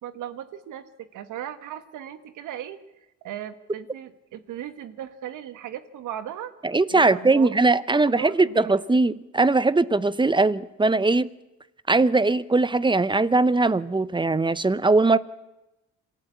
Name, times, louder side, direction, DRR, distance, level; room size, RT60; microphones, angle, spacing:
voice 1, 0.0-2.8 3.2-6.5 6.9-7.6 7.9-8.8, right 11 dB, 85° right, 1.6 m, -37 dB
voice 2, 6.6-11.3 11.9-15.2, right 3 dB, 15° right, 0.9 m, -20 dB
27.0 x 14.5 x 8.5 m
cardioid pair, 90°, 30 cm